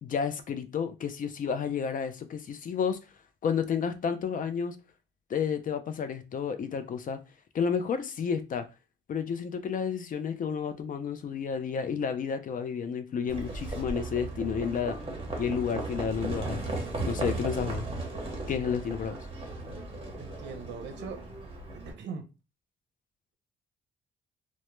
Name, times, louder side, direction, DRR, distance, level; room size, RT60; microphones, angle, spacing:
voice 1, 0.0-3.0 3.4-4.8 5.3-7.2 7.5-8.7 9.1-15.0 15.4-17.9 18.5-19.2, left 6 dB, 45° left, 0.4 m, -31 dB
Livestock farm animals working animals, 13.3-21.9, right 2 dB, 30° right, 0.8 m, -36 dB
voice 2, 20.2-21.2 21.7-22.2, right 5 dB, 65° right, 0.6 m, -40 dB
2.1 x 2.0 x 3.0 m
cardioid pair, 90°, 20 cm